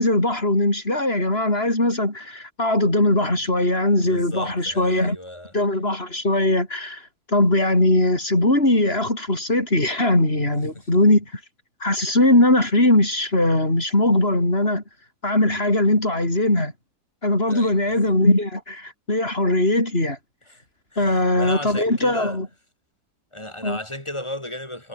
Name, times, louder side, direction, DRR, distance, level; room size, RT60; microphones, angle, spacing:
voice 1, 0.0-5.2 5.5-7.0 7.3-11.4 11.8-14.8 15.2-16.7 17.2-20.2 21.0-22.5 23.6-23.8, left 1 dB, 35° left, 6.8 m, -20 dB
voice 2, 4.0-5.5 10.8-10.9 17.5-18.2 20.5-20.6 20.9-22.4 23.3-24.9, left 1 dB, 15° left, 5.6 m, -35 dB
omnidirectional pair, 1.8 m